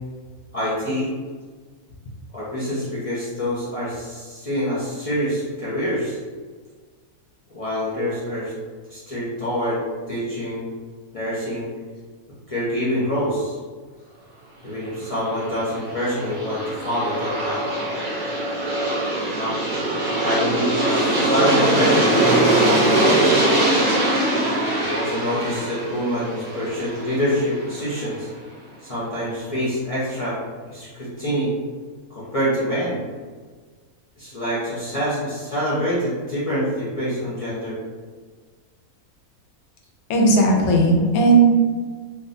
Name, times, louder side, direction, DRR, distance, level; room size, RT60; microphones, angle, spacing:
voice 1, 0.5-1.1 2.3-6.2 7.5-8.5 8.9-9.8 10.1-10.6 11.1-11.7 12.5-13.6 14.6-17.6 19.3-19.6 20.2-23.4 24.7-28.3 28.8-30.4 30.7-31.5 32.1-33.0 34.2-37.7, equal, 55° left, -10 dB, 0.3 m, -26 dB
Aircraft, 15.2-28.0, right 1 dB, 50° right, 0.7 m, -22 dB
voice 2, 40.1-41.5, right 2 dB, 85° left, 0 dB, 1.1 m, -16 dB
2.6 x 2.3 x 2.6 m, 1.5 s
omnidirectional pair, 1.5 m